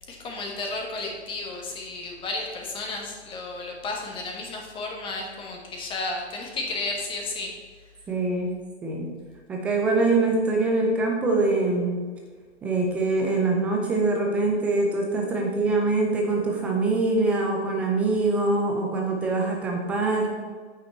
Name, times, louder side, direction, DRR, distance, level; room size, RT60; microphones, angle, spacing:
voice 1, 0.1-7.5, left 3 dB, 15° left, 1 dB, 1.3 m, -33 dB
voice 2, 8.1-8.5 8.8-9.1 9.5-12.1 12.6-20.4, right 3 dB, 5° right, 0 dB, 0.4 m, -24 dB
8.6 x 5.9 x 4.2 m, 1.5 s
figure-of-eight pair, 120°, 34 cm